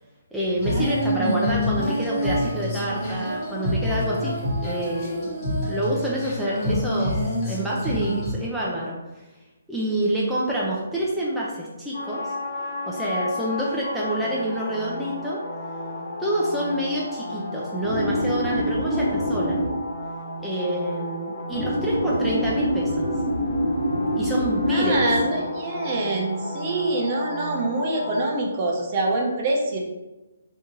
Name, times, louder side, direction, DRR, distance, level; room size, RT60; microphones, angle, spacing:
voice 1, 0.3-5.4 5.6-7.2 7.5-9.0 9.7-12.3 12.9-15.4 16.2-19.6 20.4-23.1 24.1-25.0, right 1 dB, ahead, -7 dB, 0.5 m, -27 dB
Female singing, 0.6-8.3, equal, 30° left, 1.4 m, -26 dB
sound 1, 11.9-28.2, equal, 65° left, 1.2 m, -28 dB
voice 2, 24.7-29.8, right 2 dB, 35° right, -1 dB, 0.7 m, -25 dB
2.9 x 2.6 x 3.7 m, 1.1 s
hypercardioid pair, 145°, 0 cm